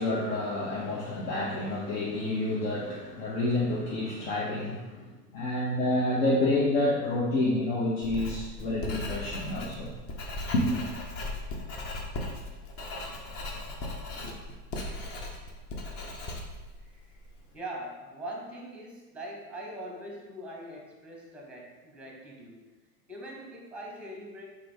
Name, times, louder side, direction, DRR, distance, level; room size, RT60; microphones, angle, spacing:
voice 1, 0.0-9.9 10.5-10.8, left 1 dB, 55° left, -6 dB, 1.0 m, -28 dB
Writing, 8.0-17.4, left 2 dB, 30° left, 0.7 m, -38 dB
voice 2, 16.8-17.2 17.5-22.7 23.1-24.4, right 1 dB, ahead, -1 dB, 0.8 m, -42 dB
3.8 x 3.4 x 3.4 m, 1.2 s
hypercardioid pair, 100°, 48 cm